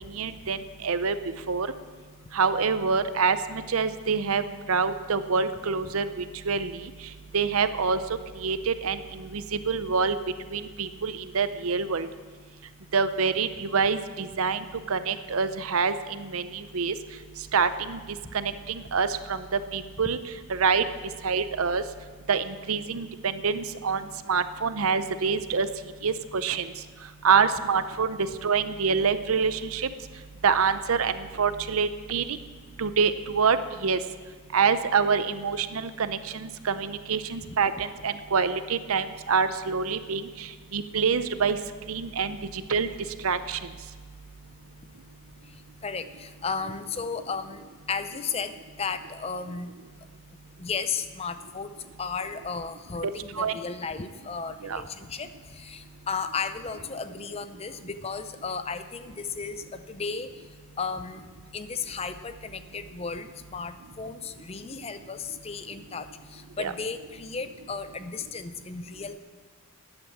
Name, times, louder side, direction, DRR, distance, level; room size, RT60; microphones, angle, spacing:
voice 1, 0.2-0.6 0.8-1.1 1.5-1.7 2.3-4.4 4.7-6.8 7.3-8.0 8.4-10.2 10.5-12.1 12.9-14.6 14.9-16.9 17.5-18.0 18.3-20.2 20.5-20.8 21.2-21.8 22.3-24.0 24.3-25.7 26.0-26.7 27.2-28.2 28.4-29.9 30.4-32.2 32.8-34.0 34.5-40.2 40.7-41.6 41.9-42.4 42.7-42.9 43.2-43.6 53.4-53.6 54.6-54.8 66.6-66.7, right 5 dB, 75° right, 12 dB, 0.7 m, -26 dB
voice 2, 45.8-49.7 50.6-60.3 60.8-61.3 61.5-69.2, left 5 dB, 25° left, 11 dB, 0.5 m, -34 dB
13.0 x 8.9 x 7.3 m, 1.5 s
head